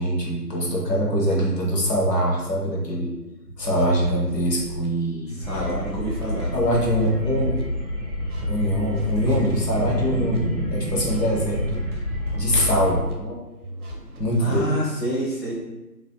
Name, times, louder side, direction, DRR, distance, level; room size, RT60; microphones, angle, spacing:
voice 1, 0.0-3.1 3.6-5.3 6.5-7.6 8.5-11.8 12.3-13.1 14.2-14.7, equal, 75° left, -2 dB, 0.8 m, -23 dB
sound 1, 3.6-4.9 5.3-7.6 8.1-10.4 10.9-13.1 13.6-14.7, right 1 dB, 65° right, 0.7 m, -36 dB
voice 2, 5.4-6.5 13.2-13.4 14.4-15.6, right 1 dB, 40° left, -9 dB, 0.8 m, -27 dB
sound 2, 5.4-13.0, left 1 dB, ahead, 0.4 m, -28 dB
2.5 x 2.2 x 2.3 m, 1.0 s
figure-of-eight pair, 160°, 49 cm